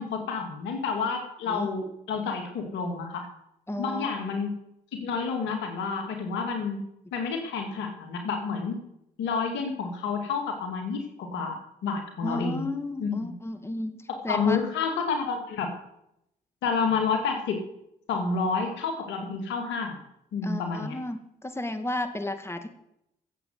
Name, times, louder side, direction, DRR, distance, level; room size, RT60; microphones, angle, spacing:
voice 1, 0.0-3.3 3.8-4.5 4.9-6.8 7.1-8.8 9.2-12.7 13.0-13.3 14.3-15.7 16.6-17.6 18.1-20.0 20.3-21.0, left 5 dB, 80° left, 4 dB, 2.5 m, -29 dB
voice 2, 3.7-4.1 12.2-14.0 14.2-14.6 20.4-22.7, left 1 dB, 15° left, 8 dB, 1.9 m, -33 dB
14.0 x 8.0 x 7.9 m, 0.78 s
hypercardioid pair, 50°, 19 cm